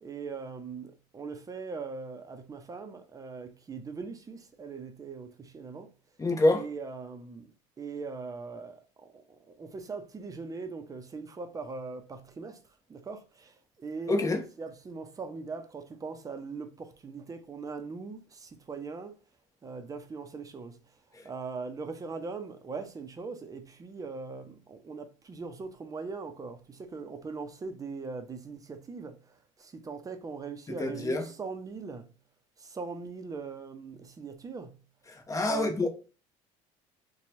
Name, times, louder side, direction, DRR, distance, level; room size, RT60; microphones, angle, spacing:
voice 1, 0.0-5.9 6.5-12.6 12.9-14.2 14.6-19.2 19.6-20.8 21.2-32.1 32.6-34.8 35.5-35.9, right 4 dB, 25° right, 0.6 m, -40 dB
voice 2, 6.2-6.6 14.1-14.4 21.2-21.3 30.8-31.2 35.1-35.9, left 2 dB, 20° left, 0.9 m, -26 dB
2.9 x 2.3 x 4.1 m
supercardioid pair, 100°, 15 cm